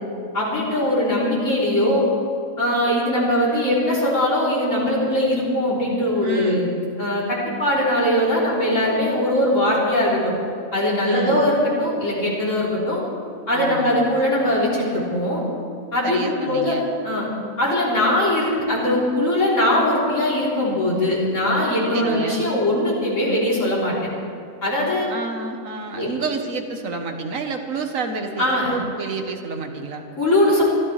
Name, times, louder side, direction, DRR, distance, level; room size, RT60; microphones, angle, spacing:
voice 1, 0.3-2.1 2.6-6.7 7.0-10.2 10.7-13.0 13.5-15.4 15.9-16.8 17.0-17.3 17.6-23.9 24.6-25.1 26.0-26.1 28.4-28.7 30.2-30.6, left 1 dB, 70° left, -7 dB, 4.1 m, -21 dB
voice 2, 6.2-6.7 11.0-11.5 13.5-14.0 16.0-16.8 21.9-22.5 25.1-30.0, right 4 dB, 80° right, 4 dB, 1.7 m, -29 dB
24.0 x 13.5 x 3.3 m, 2.4 s
omnidirectional pair, 1.4 m